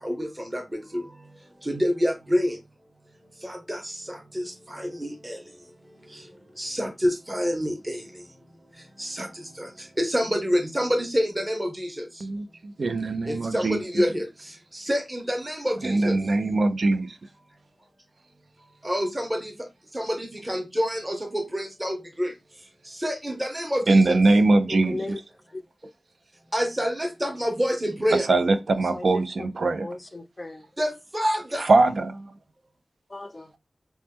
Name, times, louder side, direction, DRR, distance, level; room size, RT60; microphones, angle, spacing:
voice 1, 0.0-1.0 1.6-2.6 3.4-5.4 6.1-6.2 6.6-8.0 9.0-12.0 13.3-16.2 18.8-19.5 19.9-22.3 22.9-24.2 26.5-28.3 30.8-31.7, equal, 20° right, 0.7 m, -27 dB
voice 2, 12.2-13.8 15.8-17.1 23.9-25.2 28.3-29.9 31.7-32.2, right 2 dB, 70° right, 0.4 m, -21 dB
voice 3, 24.7-25.2 25.5-25.6 28.9-30.6 33.1-33.5, left 2 dB, 25° left, 0.4 m, -36 dB
2.9 x 2.1 x 3.4 m
wide cardioid pair, 100°, 0 cm